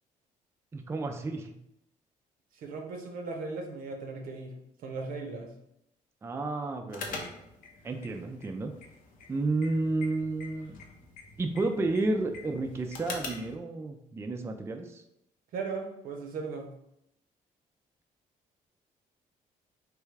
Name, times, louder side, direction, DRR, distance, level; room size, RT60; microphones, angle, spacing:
voice 1, 0.7-1.6 6.2-7.3 7.8-8.7 9.3-10.8 11.4-15.0, right 2 dB, 20° right, 4 dB, 0.3 m, -31 dB
voice 2, 2.5-5.5 15.5-16.7, right 4 dB, 75° right, 3 dB, 0.7 m, -37 dB
sound 1, 6.9-13.6, left 4 dB, 70° left, 0.7 m, -44 dB
3.3 x 2.3 x 3.2 m, 0.80 s
cardioid pair, 85°, 15 cm